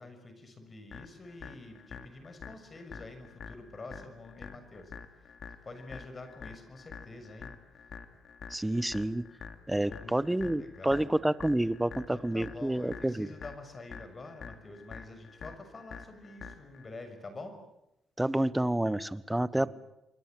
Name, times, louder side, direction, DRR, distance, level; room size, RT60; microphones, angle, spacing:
voice 1, 0.0-4.9 5.2-5.3 5.6-7.5 9.9-11.1 12.1-17.6 19.5-19.7, left 2 dB, 30° left, 8 dB, 6.3 m, -47 dB
sound 1, 0.9-16.9, left 6 dB, 55° left, 2.6 m, -48 dB
voice 2, 8.5-9.2 9.7-13.3 18.2-19.7, right 1 dB, 10° right, 16 dB, 1.2 m, -29 dB
28.0 x 22.5 x 7.7 m, 0.91 s
cardioid pair, 90°, 0 cm